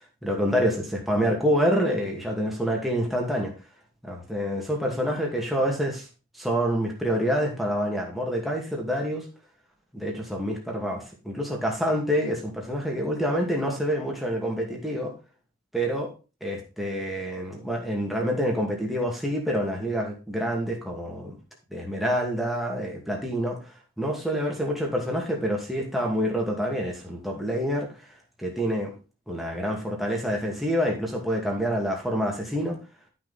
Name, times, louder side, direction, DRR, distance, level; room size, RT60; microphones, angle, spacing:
voice 1, 0.2-3.5 4.0-6.1 6.3-9.3 9.9-15.1 15.7-16.1 16.4-21.4 21.7-28.1 28.4-28.9 29.3-32.8, equal, ahead, -1 dB, 2.3 m, -27 dB
12.0 x 5.9 x 4.2 m, 0.32 s
head